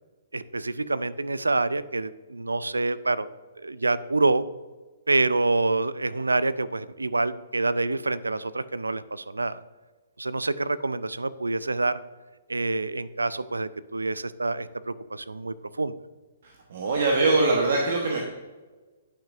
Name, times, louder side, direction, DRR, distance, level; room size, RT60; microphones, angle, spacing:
voice 1, 0.3-3.3 3.6-4.5 5.1-9.6 10.2-12.0 12.5-15.9, right 3 dB, 85° right, 16 dB, 0.3 m, -27 dB
voice 2, 16.4-18.2, right 3 dB, 60° right, 0 dB, 1.0 m, -23 dB
9.9 x 6.0 x 2.6 m, 1.3 s
figure-of-eight pair, 120°, 0 cm